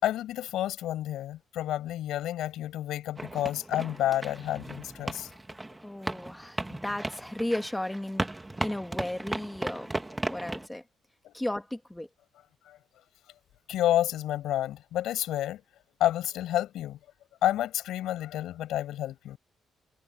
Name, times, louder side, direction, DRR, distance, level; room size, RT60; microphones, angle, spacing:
voice 1, 0.0-5.3 12.7-12.8 13.7-15.6 16.0-17.0 17.4-19.4, left 13 dB, 85° left, 7.5 m, -29 dB
sound 1, 3.2-10.7, right 2 dB, 15° right, 1.9 m, -36 dB
voice 2, 5.8-8.3 8.6-9.9 10.3-10.8 11.3-12.1, left 1 dB, 10° left, 2.1 m, -34 dB
cardioid pair, 90°, 0 cm